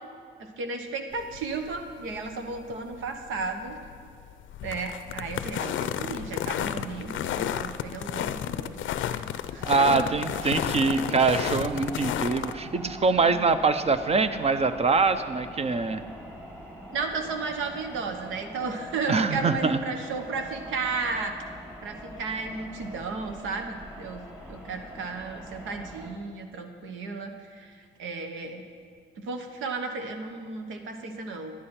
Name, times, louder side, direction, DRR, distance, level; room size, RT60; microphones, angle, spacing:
voice 1, 0.4-3.8 4.6-8.7 9.5-10.1 16.9-21.4 21.8-27.7 28.0-28.6 29.2-31.5, right 4 dB, 85° right, 6 dB, 1.1 m, -34 dB
sound 1, 1.1-12.5, left 10 dB, 75° left, 0.5 m, -32 dB
sound 2, 9.6-26.1, equal, 10° right, 2.9 m, -43 dB
voice 2, 9.6-16.0 19.1-19.8, right 4 dB, 30° right, 11 dB, 0.6 m, -24 dB
11.0 x 10.5 x 4.4 m, 2.4 s
cardioid pair, 90°, 20 cm